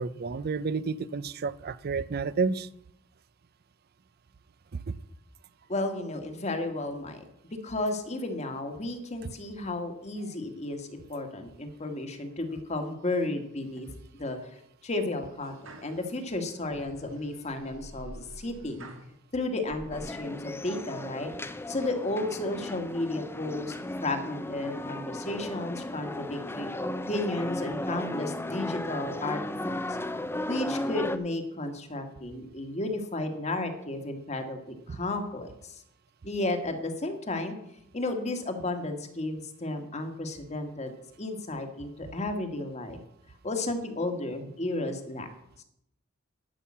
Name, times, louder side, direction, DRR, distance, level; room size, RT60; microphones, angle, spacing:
voice 1, 0.0-2.7 4.7-5.0, right 4 dB, 50° right, 18 dB, 0.5 m, -30 dB
voice 2, 5.7-7.2 7.6-13.9 14.2-14.4 14.8-18.9 19.3-21.3 21.7-23.7 24.0-26.7 27.1-29.4 29.6-30.0 30.5-35.8 36.2-37.6 37.9-40.9 41.2-43.0 43.4-45.3 45.6-45.7, left 2 dB, 35° left, 5 dB, 1.4 m, -33 dB
sound 1, 13.0-13.7 14.1-14.5 15.1-19.1 19.6-20.0, right 1 dB, 70° right, 1.7 m, -48 dB
sound 2, 19.9-31.2, left 1 dB, 10° left, 0.6 m, -35 dB
11.5 x 5.6 x 8.5 m, 0.78 s
head